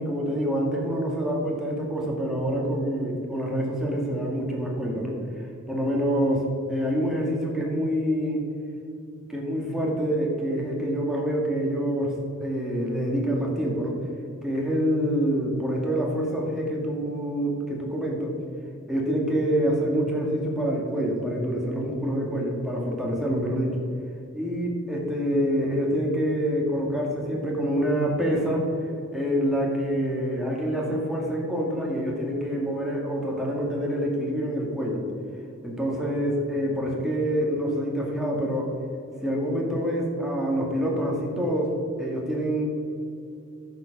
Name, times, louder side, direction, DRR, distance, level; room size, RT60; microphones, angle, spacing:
voice 1, 0.0-5.2 5.7-6.4 6.7-8.5 9.3-14.0 14.4-18.3 18.9-23.8 24.3-28.7 29.1-35.0 35.6-38.7 39.2-42.6, equal, ahead, -3 dB, 2.0 m, -26 dB
10.0 x 6.9 x 6.1 m, 2.6 s
head